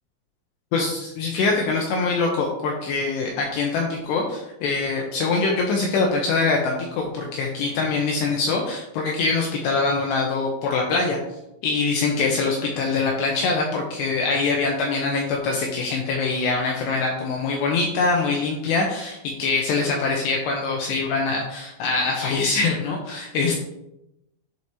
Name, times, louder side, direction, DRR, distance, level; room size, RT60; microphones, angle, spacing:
voice 1, 0.7-11.2 11.6-23.6, left 4 dB, 85° left, 0 dB, 2.5 m, -23 dB
11.0 x 4.7 x 2.9 m, 0.87 s
omnidirectional pair, 5.8 m